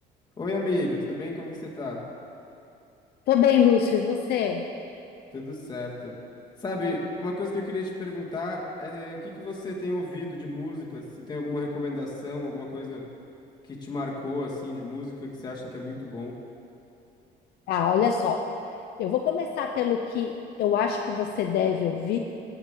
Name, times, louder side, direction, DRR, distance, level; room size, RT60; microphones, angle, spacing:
voice 1, 0.4-2.1 5.3-6.1 6.6-13.0 13.7-16.4, left 2 dB, 25° left, -3 dB, 1.8 m, -32 dB
voice 2, 3.3-4.6 17.7-18.4 19.0-22.2, left 8 dB, 70° left, 3 dB, 0.5 m, -24 dB
14.0 x 7.1 x 3.7 m, 2.7 s
cardioid pair, 110°, 17 cm